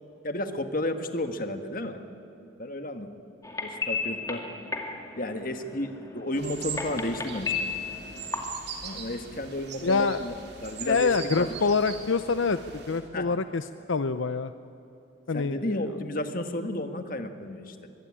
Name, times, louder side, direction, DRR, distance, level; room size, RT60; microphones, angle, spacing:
voice 1, 0.2-2.0 2.6-3.1 3.6-4.4 5.2-7.7 8.8-10.3 10.6-11.5 13.1-13.3 15.3-17.9, left 1 dB, 45° left, 7 dB, 1.7 m, -32 dB
sound 1, 3.4-8.4, left 4 dB, 15° left, 2.3 m, -34 dB
sound 2, 6.4-13.0, right 6 dB, 55° right, 3.6 m, -41 dB
voice 2, 9.8-10.2 10.9-14.5 15.3-16.0, left 4 dB, 70° left, 11 dB, 0.6 m, -26 dB
24.0 x 23.0 x 10.0 m, 2.8 s
head